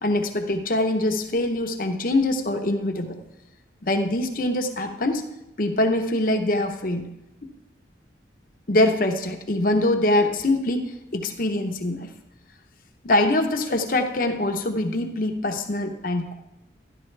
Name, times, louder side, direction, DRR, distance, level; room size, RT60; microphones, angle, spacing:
voice 1, 0.0-3.2 3.8-5.2 5.6-7.1 8.7-10.9 11.1-12.1 13.0-16.3, left 1 dB, 50° left, 5 dB, 0.9 m, -23 dB
12.5 x 11.0 x 3.3 m, 0.88 s
head